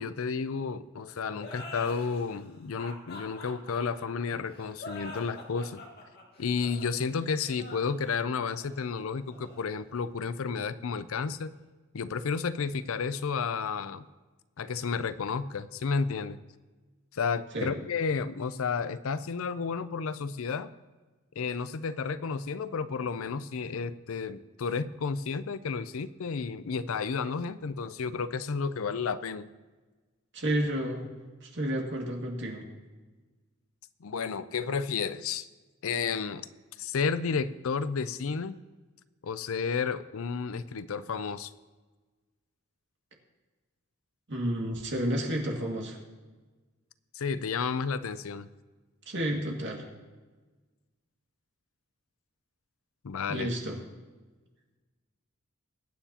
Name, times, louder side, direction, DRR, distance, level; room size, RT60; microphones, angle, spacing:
voice 1, 0.0-5.8 6.4-11.5 11.9-14.1 14.6-16.4 17.1-20.7 21.4-29.5 34.0-35.5 35.8-36.5 36.8-38.6 39.2-41.5 47.1-48.5 53.0-53.5, left 5 dB, 70° left, 14 dB, 0.5 m, -32 dB
sound 1, 1.4-10.6, left 2 dB, 50° left, 1.9 m, -46 dB
voice 2, 30.3-31.1 31.4-32.7 44.3-46.0 49.1-49.9 53.3-53.8, right 1 dB, 60° right, 0 dB, 2.1 m, -31 dB
22.0 x 9.1 x 2.9 m, 1.3 s
head